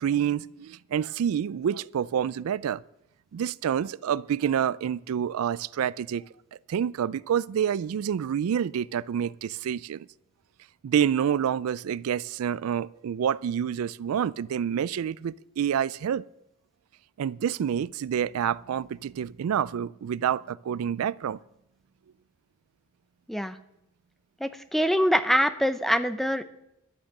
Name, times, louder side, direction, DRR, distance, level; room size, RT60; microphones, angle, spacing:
voice 1, 0.0-2.8 3.3-6.2 6.7-10.1 10.8-16.2 17.2-21.4, right 8 dB, 90° right, 0.3 m, -28 dB
voice 2, 24.4-26.4, equal, ahead, 0.6 m, -24 dB
11.5 x 8.8 x 6.6 m
head